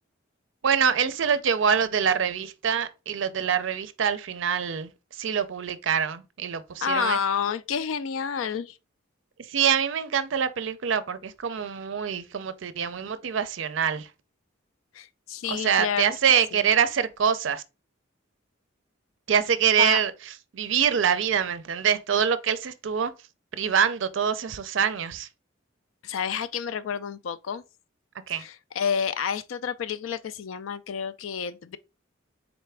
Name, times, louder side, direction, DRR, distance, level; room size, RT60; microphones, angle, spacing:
voice 1, 0.6-4.9 5.2-7.2 9.5-14.1 15.5-17.6 19.3-20.1 20.5-23.1 23.5-25.3 28.3-28.4, right 7 dB, 65° right, 0.4 m, -25 dB
voice 2, 6.8-8.7 15.0-16.2 16.5-16.6 19.8-20.0 26.0-27.6 28.3-31.8, left 7 dB, 80° left, 0.4 m, -29 dB
4.0 x 3.3 x 3.3 m
head